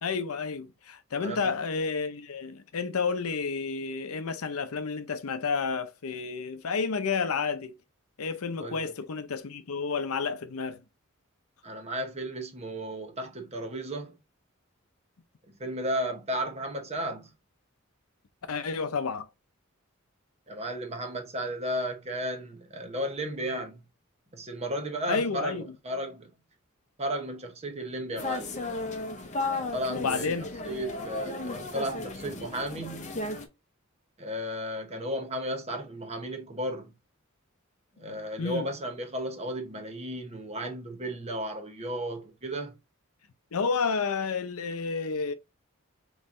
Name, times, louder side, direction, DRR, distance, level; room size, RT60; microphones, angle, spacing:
voice 1, 0.0-7.7 8.2-10.8 18.5-19.3 25.1-25.7 29.9-30.5 38.4-38.6 43.5-45.3, left 5 dB, 85° left, 0.6 m, -30 dB
voice 2, 1.2-1.5 8.6-8.9 11.6-14.2 15.5-17.3 20.5-23.8 24.3-26.3 27.0-28.6 29.7-33.2 34.2-36.9 38.0-42.8, equal, 30° right, 0.9 m, -34 dB
sound 1, 28.2-33.5, left 2 dB, 35° left, 0.7 m, -34 dB
5.4 x 3.1 x 2.5 m
head